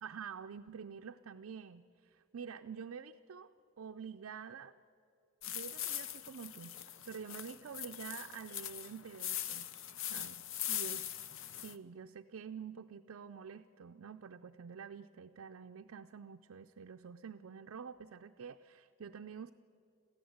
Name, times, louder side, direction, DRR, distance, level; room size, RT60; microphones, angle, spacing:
voice 1, 0.0-4.8 5.5-9.7 10.1-11.1 11.5-19.5, right 6 dB, 60° right, 5 dB, 0.4 m, -48 dB
sound 1, 5.4-11.8, left 10 dB, 60° left, 0.7 m, -41 dB
26.5 x 15.0 x 7.9 m, 2.7 s
head